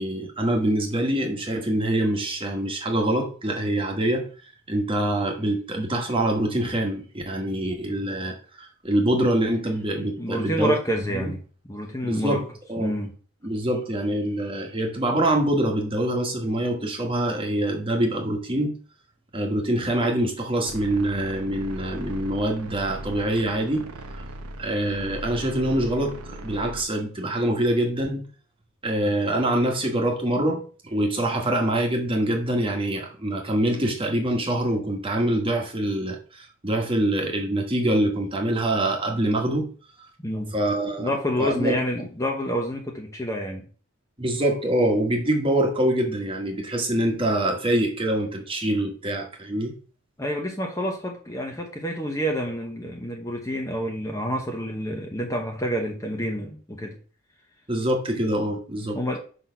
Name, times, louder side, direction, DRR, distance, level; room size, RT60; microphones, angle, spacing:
voice 1, 0.0-4.3 4.7-10.8 11.1-11.3 12.0-12.4 12.7-12.9 13.4-18.8 19.3-23.9 24.1-24.2 24.6-28.3 28.8-39.7 40.0-40.1 40.5-41.1 41.4-42.1 44.2-49.7 57.7-59.0, right 1 dB, 25° right, 1.3 m, -25 dB
voice 2, 10.0-11.4 11.6-12.4 12.8-13.1 40.2-40.5 41.0-43.7 50.2-57.0 58.9-59.2, equal, 15° left, 0.9 m, -28 dB
sound 1, 20.6-26.8, right 1 dB, 85° right, 0.9 m, -38 dB
5.9 x 4.2 x 5.6 m
head